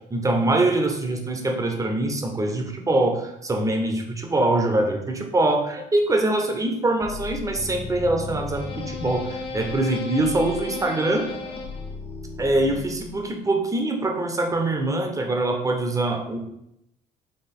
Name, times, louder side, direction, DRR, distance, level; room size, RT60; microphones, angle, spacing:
voice 1, 0.1-11.2 12.4-16.4, right 2 dB, 20° right, 3 dB, 0.8 m, -23 dB
sound 1, 7.0-13.3, left 3 dB, 35° left, 0.8 m, -34 dB
4.6 x 3.0 x 3.6 m, 0.80 s
cardioid pair, 110°, 17 cm